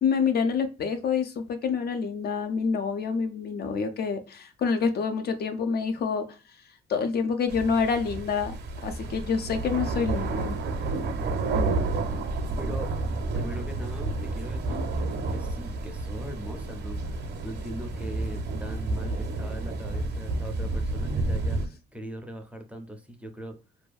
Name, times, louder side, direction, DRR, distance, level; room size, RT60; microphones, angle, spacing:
voice 1, 0.0-6.2 6.9-8.5 8.8-10.6, left 5 dB, 55° left, 0.5 m, -27 dB
sound 1, 7.5-21.7, right 2 dB, 60° right, 0.6 m, -30 dB
voice 2, 12.6-12.9 13.3-23.6, right 1 dB, 5° right, 0.5 m, -40 dB
2.6 x 2.3 x 2.2 m
cardioid pair, 90°, 20 cm